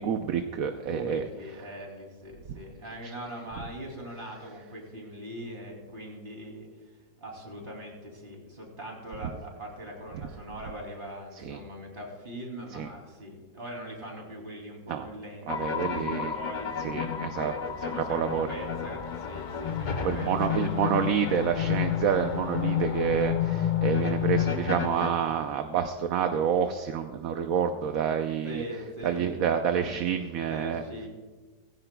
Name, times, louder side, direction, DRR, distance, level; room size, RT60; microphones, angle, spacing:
voice 1, 0.0-1.3 11.4-11.6 12.7-12.9 14.9-15.0 15.5-16.3 16.8-17.5 18.1-18.5 20.0-28.6 29.0-30.8, right 7 dB, 65° right, 6 dB, 1.0 m, -28 dB
voice 2, 0.9-6.7 7.2-17.4 17.8-21.1 28.4-29.6 29.9-30.0 30.4-31.1, equal, 30° right, 0 dB, 3.0 m, -41 dB
sound 1, 15.5-25.1, left 8 dB, 70° left, 0.4 m, -30 dB
19.0 x 16.0 x 2.3 m, 1.3 s
omnidirectional pair, 1.8 m